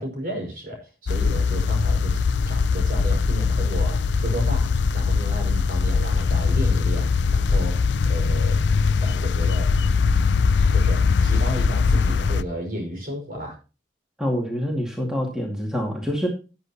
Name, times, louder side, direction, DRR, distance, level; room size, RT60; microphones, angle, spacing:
voice 1, 0.0-2.1 2.5-8.6 9.0-9.7 10.7-13.6, right 1 dB, 50° right, 2 dB, 5.0 m, -33 dB
sound 1, 1.1-12.4, left 4 dB, 85° left, 0.5 m, -21 dB
voice 2, 14.2-16.3, equal, 5° right, 0 dB, 2.2 m, -26 dB
13.0 x 9.5 x 2.8 m, 0.31 s
head